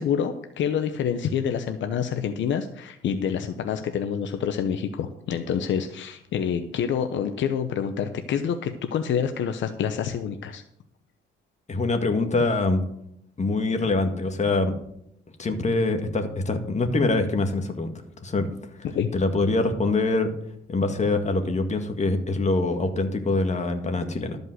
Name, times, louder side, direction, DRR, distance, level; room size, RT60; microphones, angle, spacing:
voice 1, 0.0-10.6 18.8-19.1, left 8 dB, 70° left, 8 dB, 0.8 m, -27 dB
voice 2, 11.7-12.8 13.4-14.7 15.4-17.9 18.2-18.5 19.1-20.3 20.7-24.4, left 3 dB, 35° left, 6 dB, 1.9 m, -24 dB
13.0 x 5.4 x 7.9 m, 0.76 s
cardioid pair, 90°, 20 cm